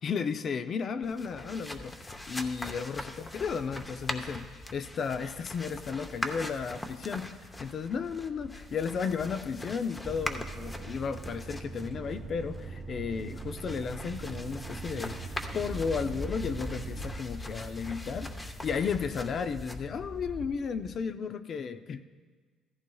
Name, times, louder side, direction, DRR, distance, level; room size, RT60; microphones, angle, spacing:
voice 1, 0.0-22.0, left 6 dB, 50° left, 9 dB, 0.5 m, -34 dB
sound 1, 1.0-21.0, left 1 dB, 15° left, 0.8 m, -41 dB
sound 2, 10.0-17.2, right 5 dB, 45° right, 0.4 m, -42 dB
15.0 x 14.0 x 2.3 m, 1.5 s
cardioid pair, 90°, 0 cm